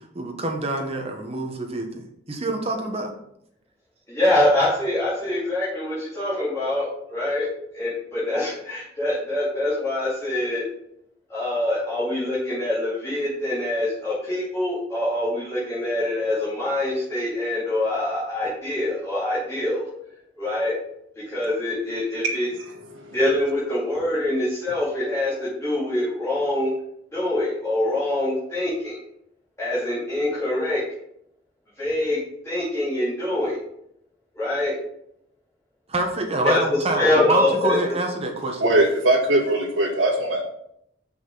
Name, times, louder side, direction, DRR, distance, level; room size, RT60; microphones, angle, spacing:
voice 1, 0.1-3.1 35.9-38.7, right 2 dB, 30° right, 3 dB, 1.1 m, -26 dB
voice 2, 4.1-10.6 11.3-19.9 20.4-20.7 21.1-22.5 23.1-26.7 27.1-29.0 29.6-30.8 31.7-32.2 32.4-33.6 34.3-34.8 36.4-37.8, left 1 dB, 15° left, -11 dB, 2.7 m, -24 dB
voice 3, 38.6-40.4, right 1 dB, 85° right, 1 dB, 1.7 m, -20 dB
6.4 x 5.9 x 3.9 m, 0.75 s
head